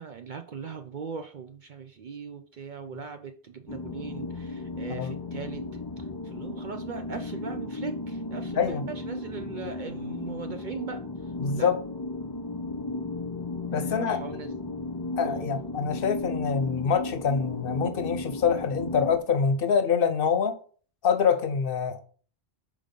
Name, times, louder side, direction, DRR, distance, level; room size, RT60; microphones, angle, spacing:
voice 1, 0.0-11.0 11.5-11.7 13.7-14.5 15.2-15.5, right 6 dB, 55° right, 0.6 m, -40 dB
sound 1, 3.7-19.2, left 2 dB, 30° left, 0.5 m, -35 dB
voice 2, 11.4-11.8 13.7-14.2 15.2-20.5 21.0-22.0, left 6 dB, 60° left, 0.9 m, -25 dB
4.8 x 3.8 x 5.2 m
omnidirectional pair, 1.1 m